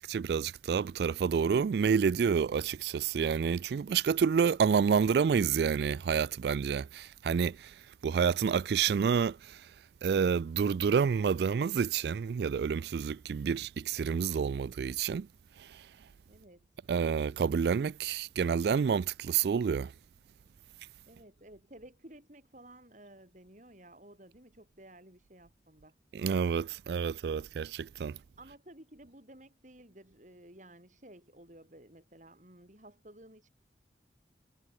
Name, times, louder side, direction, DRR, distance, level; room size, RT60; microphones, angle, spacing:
voice 1, 0.0-7.7 8.0-9.6 10.0-15.3 15.6-15.8 16.9-19.9 26.1-28.2, right 6 dB, 70° right, 0.3 m, -29 dB
voice 2, 16.3-16.7 21.1-25.9 28.4-33.5, right 1 dB, 45° right, 5.6 m, -54 dB
head